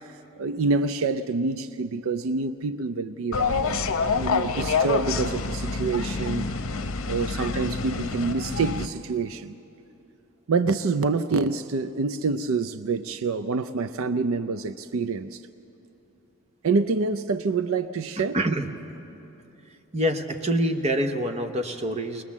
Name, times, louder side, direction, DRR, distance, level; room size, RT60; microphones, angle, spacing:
voice 1, 0.1-6.5 7.1-9.6 10.5-15.4 16.6-18.4, right 4 dB, 70° right, 12 dB, 0.5 m, -27 dB
sound 1, 3.3-8.9, left 4 dB, 65° left, 0.8 m, -27 dB
voice 2, 18.3-18.7 19.9-22.2, right 1 dB, 30° right, 5 dB, 0.9 m, -25 dB
21.0 x 20.5 x 7.3 m, 2.9 s
head